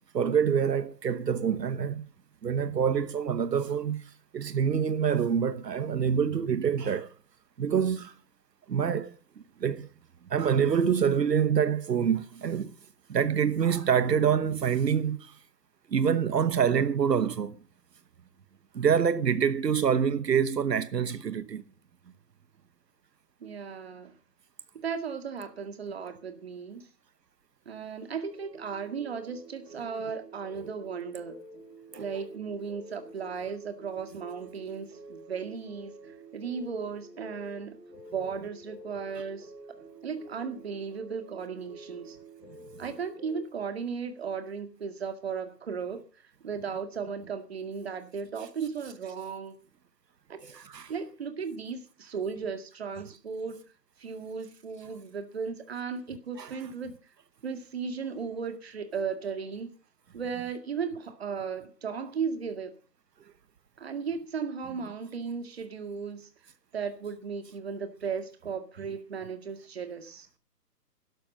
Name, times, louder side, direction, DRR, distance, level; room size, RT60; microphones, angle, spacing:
voice 1, 0.1-2.1 2.4-7.1 7.6-8.1 8.7-9.2 9.6-9.9 10.3-12.7 13.1-15.4 15.9-17.5 18.7-21.6 31.9-32.0 50.5-50.9 56.4-56.6, right 7 dB, 75° right, 1.2 m, -26 dB
voice 2, 23.4-24.1 24.7-26.9 27.7-31.4 32.0-37.8 38.1-39.5 40.0-42.2 42.8-49.6 50.3-50.6 50.9-53.6 54.0-56.9 57.4-59.7 60.1-62.7 63.8-66.3 66.7-70.3, right 6 dB, 40° right, 2.1 m, -36 dB
sound 1, 28.3-43.4, right 1 dB, 10° right, 4.8 m, -49 dB
12.5 x 10.5 x 6.5 m
hypercardioid pair, 175°, 49 cm